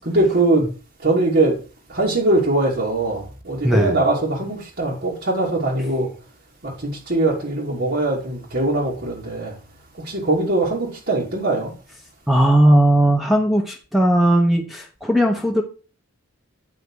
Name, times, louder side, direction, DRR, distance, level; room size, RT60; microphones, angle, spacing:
voice 1, 0.0-0.7 1.0-1.5 1.9-6.1 6.6-9.6 10.0-11.7, right 2 dB, 50° right, 2.6 m, -21 dB
voice 2, 3.6-4.0 12.3-15.6, right 1 dB, ahead, 1.0 m, -17 dB
9.4 x 5.8 x 4.7 m
head